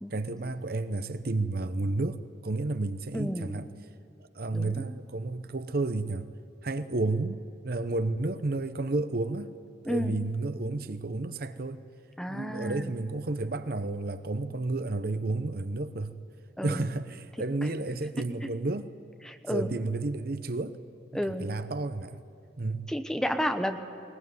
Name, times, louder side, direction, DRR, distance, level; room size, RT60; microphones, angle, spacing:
voice 1, 0.1-3.7 4.3-6.3 6.6-7.4 7.6-9.5 9.8-11.8 12.3-16.2 16.6-18.9 19.5-20.8 21.3-22.2 22.6-22.8, right 2 dB, 55° right, 11 dB, 0.9 m, -31 dB
voice 2, 3.1-3.6 4.5-4.8 9.8-10.1 12.2-12.9 16.6-16.9 18.4-18.5 19.2-19.7 21.1-21.5 22.9-23.8, equal, 5° left, 7 dB, 1.0 m, -31 dB
21.0 x 19.5 x 9.5 m, 2.8 s
head